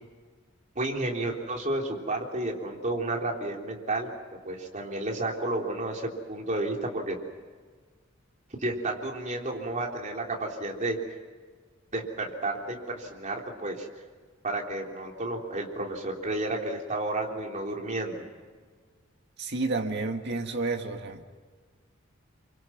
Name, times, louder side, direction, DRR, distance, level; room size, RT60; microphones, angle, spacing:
voice 1, 0.8-4.1 4.4-7.2 8.6-11.0 11.9-13.9 14.4-18.3, right 2 dB, 40° right, 0 dB, 3.6 m, -31 dB
voice 2, 19.4-21.2, right 3 dB, 60° right, 4 dB, 2.0 m, -30 dB
28.0 x 24.5 x 6.2 m, 1.6 s
head